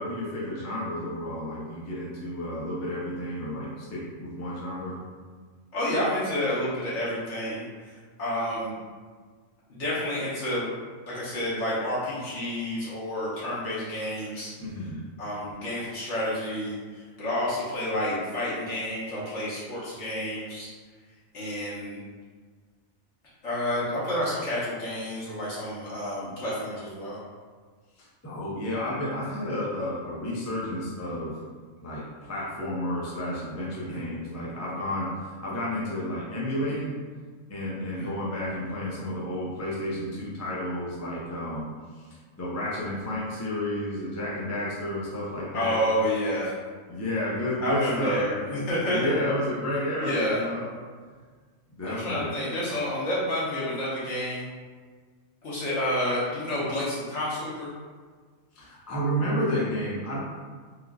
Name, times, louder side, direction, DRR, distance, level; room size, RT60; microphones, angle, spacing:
voice 1, 0.0-5.0 14.6-15.0 28.0-31.4 31.8-37.0 37.5-41.7 42.0-45.8 46.9-48.2 48.8-50.7 51.8-52.3 58.5-60.2, left 1 dB, 25° left, -6 dB, 0.3 m, -31 dB
voice 2, 5.7-8.7 9.7-10.7 11.1-14.5 15.2-20.7 21.3-22.0 23.4-27.2 33.9-34.2 37.9-38.1 45.5-46.5 47.6-49.1 50.0-50.4 51.8-54.4 55.4-57.7, left 1 dB, 65° left, -9 dB, 1.3 m, -29 dB
3.6 x 2.4 x 2.3 m, 1.5 s
omnidirectional pair, 1.4 m